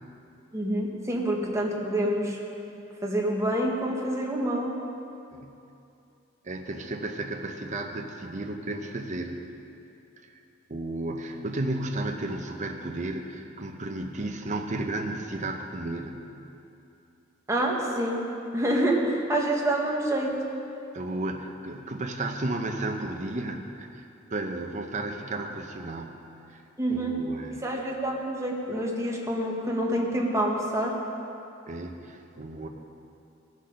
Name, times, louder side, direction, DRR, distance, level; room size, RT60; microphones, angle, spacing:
voice 1, 0.5-2.4 3.0-4.8 17.5-18.3 18.5-20.4 26.8-27.1 27.6-31.0, right 1 dB, 15° right, -1 dB, 1.3 m, -27 dB
voice 2, 6.4-9.4 10.2-10.4 10.7-16.3 20.9-26.2 26.5-26.6 26.9-27.6 31.7-32.7, right 2 dB, 40° right, 3 dB, 0.7 m, -33 dB
17.0 x 6.5 x 5.2 m, 2.7 s
head